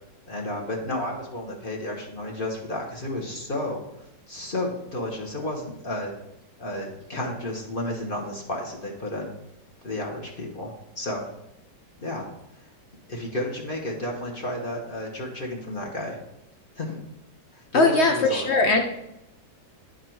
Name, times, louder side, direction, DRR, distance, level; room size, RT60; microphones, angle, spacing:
voice 1, 0.3-3.8 4.3-6.1 6.6-9.3 9.8-11.3 12.0-12.3 13.1-16.2 16.8-17.0 17.5-18.5, left 1 dB, 40° left, -1 dB, 0.9 m, -32 dB
voice 2, 17.7-18.8, left 3 dB, 85° left, 4 dB, 0.5 m, -20 dB
9.6 x 3.9 x 4.4 m, 0.88 s
omnidirectional pair, 1.9 m